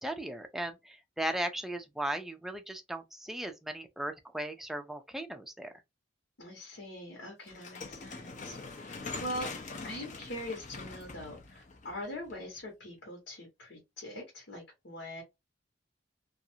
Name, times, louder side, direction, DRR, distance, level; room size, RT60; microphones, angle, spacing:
voice 1, 0.0-5.7, right 1 dB, ahead, 0.4 m, -37 dB
voice 2, 6.4-9.5 9.8-15.2, left 1 dB, 80° left, 1.2 m, -42 dB
sound 1, 7.5-12.6, left 4 dB, 40° left, 0.6 m, -43 dB
2.6 x 2.4 x 2.7 m
head